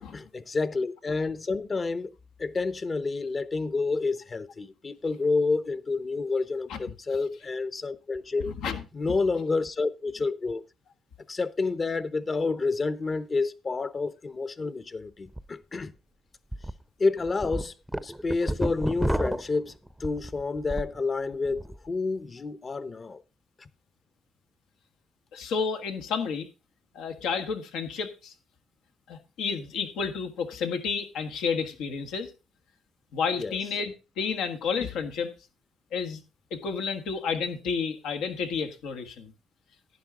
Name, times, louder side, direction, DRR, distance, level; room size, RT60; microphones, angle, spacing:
voice 1, 0.1-2.1 2.4-8.5 8.9-10.6 11.3-15.9 17.0-17.7 18.0-23.2 23.6-23.7 33.4-33.6, left 3 dB, 35° left, 0.8 m, -29 dB
voice 2, 8.4-8.8 25.3-26.5 26.9-28.3 29.1-32.3 33.1-35.3 35.9-36.2 36.5-39.3, left 5 dB, 90° left, 1.6 m, -31 dB
sound 1, 15.3-15.4 15.8-15.9 16.5-16.7 17.2-21.0 21.3-21.8, right 1 dB, 5° right, 0.6 m, -31 dB
11.0 x 9.8 x 3.7 m
cardioid pair, 90°, 0 cm